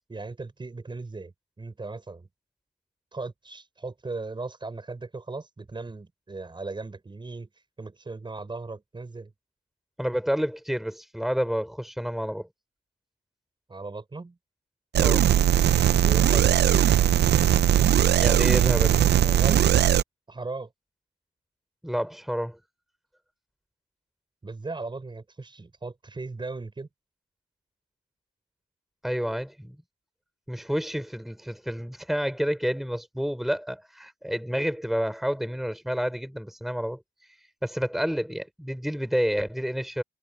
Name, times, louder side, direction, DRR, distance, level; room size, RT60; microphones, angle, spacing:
voice 1, 0.1-2.3 3.1-7.5 7.8-9.3 13.7-14.4 16.0-16.9 19.2-19.6 20.3-20.7 24.4-26.9, right 3 dB, 25° right, 6.4 m, -37 dB
voice 2, 10.0-12.5 15.0-15.3 18.2-19.1 21.8-22.6 29.0-29.8 30.5-37.0 37.6-40.0, equal, ahead, 5.5 m, -29 dB
sound 1, 14.9-20.0, right 11 dB, 55° right, 0.7 m, -19 dB
cardioid pair, 90°, 20 cm